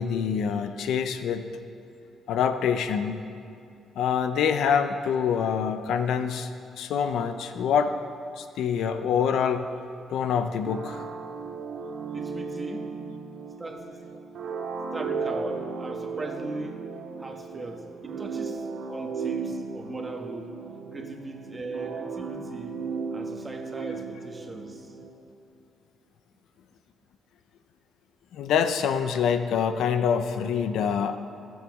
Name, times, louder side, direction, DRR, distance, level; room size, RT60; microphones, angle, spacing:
voice 1, 0.0-1.5 2.3-3.2 4.0-6.5 6.8-8.0 8.4-9.7 10.1-11.0 28.3-31.2, left 7 dB, 80° left, 9 dB, 0.6 m, -25 dB
sound 1, 10.7-25.2, right 5 dB, 65° right, 1.2 m, -35 dB
voice 2, 12.1-13.0 13.6-14.0 14.9-16.9 17.2-20.6 20.9-22.8 23.1-25.1, right 2 dB, 25° right, 2 dB, 1.5 m, -39 dB
21.5 x 7.2 x 3.6 m, 2.5 s
cardioid pair, 90°, 0 cm